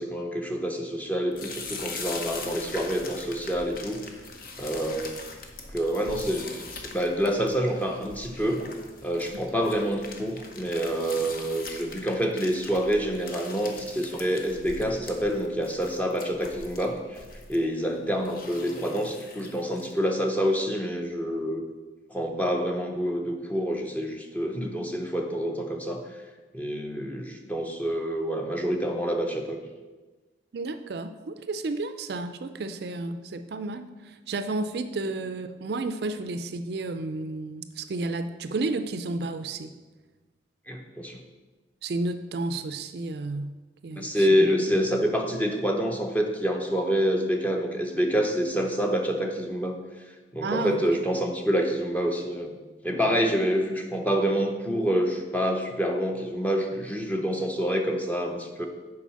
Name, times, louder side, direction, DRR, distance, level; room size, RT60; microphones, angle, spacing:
voice 1, 0.0-4.0 4.6-5.2 5.7-8.6 9.0-17.2 17.5-21.6 22.1-26.0 26.5-29.6 40.7-41.2 43.9-49.8 50.3-52.5 52.8-58.7, equal, 10° left, 2 dB, 0.7 m, -27 dB
sound 1, 1.3-20.0, left 3 dB, 50° left, 0.8 m, -42 dB
voice 2, 30.5-39.7 41.8-43.5 43.8-44.3 50.4-50.8, right 2 dB, 60° right, 9 dB, 0.4 m, -32 dB
7.2 x 4.7 x 5.6 m, 1.3 s
head